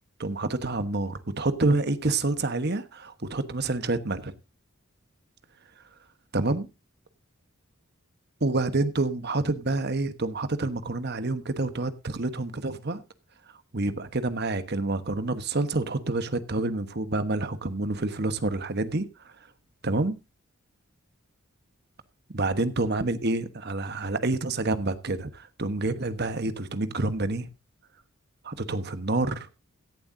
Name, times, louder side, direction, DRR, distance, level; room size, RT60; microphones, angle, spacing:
voice 1, 0.2-4.3 6.3-6.7 8.4-13.0 13.7-19.3 19.8-20.2 22.3-27.5 28.4-29.5, right 2 dB, 50° right, 1.2 m, -28 dB
16.5 x 11.5 x 2.7 m
head